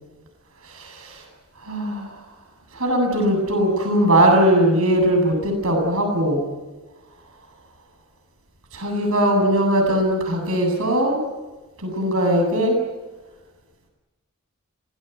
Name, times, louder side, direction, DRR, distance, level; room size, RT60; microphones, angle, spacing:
voice 1, 0.7-1.2 1.6-2.1 2.7-6.4 8.7-11.2 11.8-12.8, right 1 dB, 70° right, 3 dB, 7.9 m, -20 dB
26.5 x 19.0 x 9.5 m, 1.2 s
head